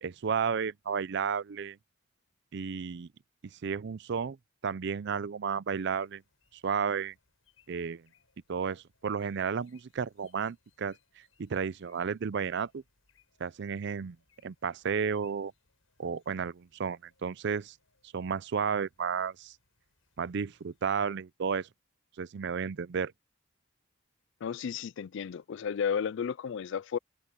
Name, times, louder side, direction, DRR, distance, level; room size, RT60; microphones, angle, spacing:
voice 1, 0.0-1.8 2.5-3.1 3.5-4.4 4.6-6.2 6.5-7.1 7.7-8.0 8.5-11.0 11.4-12.8 13.4-14.2 14.4-15.5 16.0-17.7 18.1-19.5 20.2-21.7 22.2-23.1, right 6 dB, 60° right, 0.5 m, -32 dB
sound 1, 5.7-21.0, left 7 dB, 85° left, 7.4 m, -71 dB
voice 2, 24.4-27.0, left 7 dB, 65° left, 0.4 m, -33 dB
head